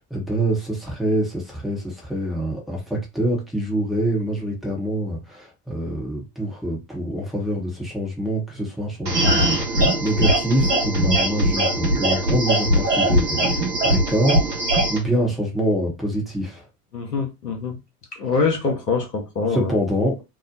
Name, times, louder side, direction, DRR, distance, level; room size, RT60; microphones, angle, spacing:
voice 1, 0.0-14.6 14.9-16.6 19.5-20.2, right 1 dB, ahead, 0.7 m, -25 dB
sound 1, 9.1-15.0, right 1 dB, 80° right, 0.9 m, -20 dB
voice 2, 16.9-17.8 18.1-19.7, left 4 dB, 90° left, 0.8 m, -24 dB
2.8 x 2.0 x 2.4 m
figure-of-eight pair, 80°, 47 cm